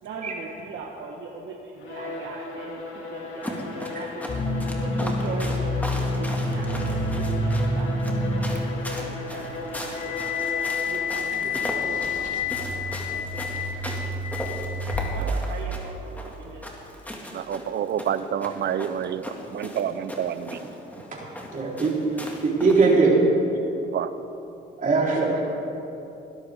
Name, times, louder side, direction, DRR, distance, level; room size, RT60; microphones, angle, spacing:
voice 1, 0.0-4.2 4.8-10.3 10.9-13.8 14.9-16.9 20.9-21.0, right 4 dB, 75° right, -1 dB, 1.4 m, -40 dB
Bowed string instrument, 1.8-11.3, left 3 dB, 80° left, 2.3 m, -36 dB
sound 1, 3.4-23.0, equal, 10° left, 2.2 m, -38 dB
sound 2, 4.3-15.3, left 2 dB, 40° left, 2.4 m, -28 dB
voice 2, 17.3-20.7 23.9-24.1, right 9 dB, 60° right, 13 dB, 0.7 m, -28 dB
voice 3, 21.5-23.1 24.8-25.4, right 4 dB, 40° right, -4 dB, 4.0 m, -21 dB
21.0 x 13.0 x 3.7 m, 2.9 s
cardioid pair, 90°, 20 cm